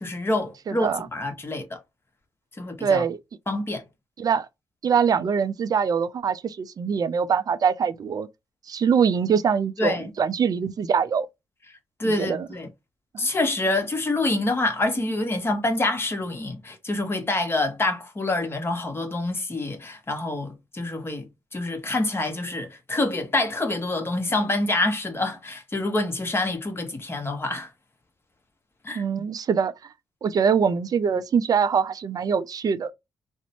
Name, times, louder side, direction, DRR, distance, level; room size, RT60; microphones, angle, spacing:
voice 1, 0.0-1.8 2.6-3.0 3.5-3.8 9.8-10.1 12.0-12.7 13.2-27.7 28.8-29.0, left 2 dB, 30° left, 1.0 m, -26 dB
voice 2, 0.7-1.0 2.8-3.2 4.2-4.5 4.8-8.3 8.7-11.3 12.0-12.5 13.1-13.3 15.0-15.1 28.9-29.7 30.2-32.9, right 6 dB, 50° right, 0.4 m, -23 dB
2.5 x 2.1 x 2.8 m
hypercardioid pair, 45°, 8 cm